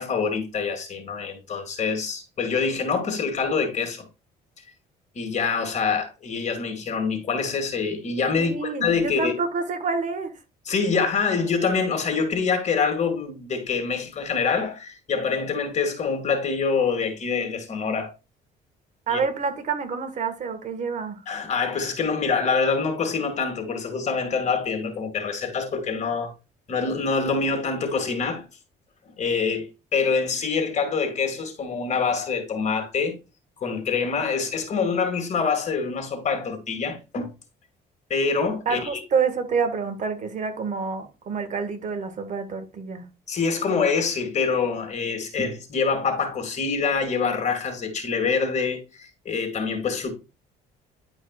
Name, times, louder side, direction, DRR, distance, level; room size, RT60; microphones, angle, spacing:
voice 1, 0.0-4.1 5.2-9.3 10.7-18.1 19.1-19.2 21.3-26.3 26.7-28.4 29.2-29.7 29.9-33.1 33.6-37.3 38.1-39.0 43.3-50.1, left 5 dB, 45° left, 2.1 m, -25 dB
voice 2, 8.3-10.3 19.1-21.2 38.6-43.0, right 5 dB, 45° right, 1.8 m, -27 dB
10.5 x 5.0 x 2.4 m
cardioid pair, 110°, 17 cm